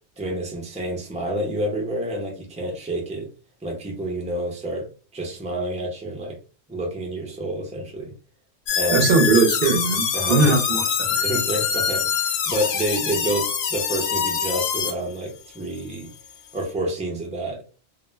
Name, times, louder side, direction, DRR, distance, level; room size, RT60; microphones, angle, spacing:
voice 1, 0.2-3.3 3.6-4.9 5.1-6.4 6.7-8.1 8.7-9.1 10.1-10.6 11.1-16.1 16.5-17.6, right 1 dB, 10° right, 0 dB, 0.6 m, -28 dB
sound 1, 8.7-14.9, left 7 dB, 70° left, 0.8 m, -24 dB
voice 2, 8.9-11.2, right 3 dB, 60° right, 2 dB, 0.7 m, -20 dB
2.4 x 2.1 x 3.1 m, 0.35 s
omnidirectional pair, 1.2 m